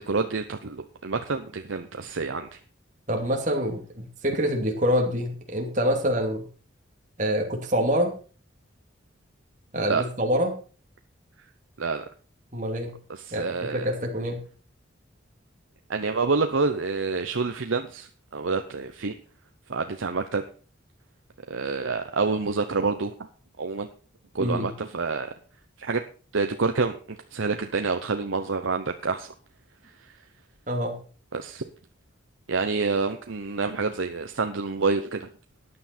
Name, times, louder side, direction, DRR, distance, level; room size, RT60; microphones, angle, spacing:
voice 1, 0.1-2.6 9.9-10.0 11.8-12.0 13.1-13.9 15.9-19.2 19.7-20.4 21.5-23.1 23.6-23.9 24.3-25.3 25.8-26.0 26.3-29.3 30.0-30.1 31.3-31.6 32.5-35.3, right 4 dB, 85° right, 6 dB, 0.8 m, -27 dB
voice 2, 3.1-6.5 7.2-8.1 9.7-10.5 12.5-12.9 13.3-14.4 24.4-24.7 30.7-31.0, equal, 40° right, 1 dB, 2.8 m, -26 dB
13.5 x 9.7 x 4.4 m, 0.38 s
head